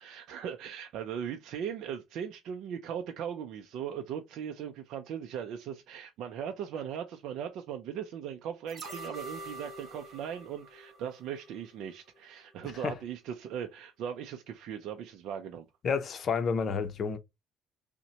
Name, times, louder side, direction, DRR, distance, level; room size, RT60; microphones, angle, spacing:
voice 1, 0.0-15.7, right 8 dB, 70° right, 0.4 m, -39 dB
sound 1, 8.7-11.8 12.2-12.3, right 2 dB, 45° right, 1.6 m, -45 dB
voice 2, 15.8-17.2, left 5 dB, 45° left, 0.6 m, -30 dB
5.7 x 2.1 x 2.8 m
cardioid pair, 125°, 0 cm